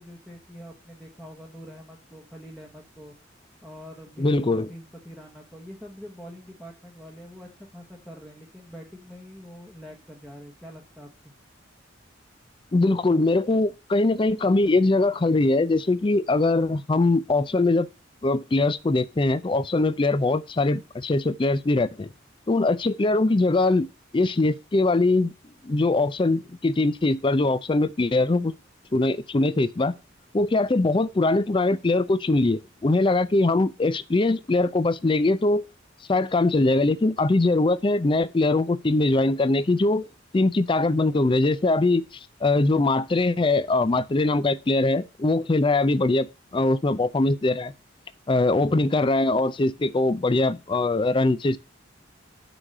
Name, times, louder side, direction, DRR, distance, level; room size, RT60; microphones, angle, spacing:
voice 1, 0.0-3.1 3.6-11.3, equal, ahead, 1.1 m, -44 dB
voice 2, 4.2-4.7 12.7-17.9 18.2-22.1 22.5-23.9 24.1-25.3 25.6-28.5 28.9-29.9 30.3-35.6 36.1-40.1 40.3-42.0 42.4-47.7 48.3-51.6, left 2 dB, 25° left, 0.4 m, -22 dB
6.2 x 4.8 x 6.5 m
head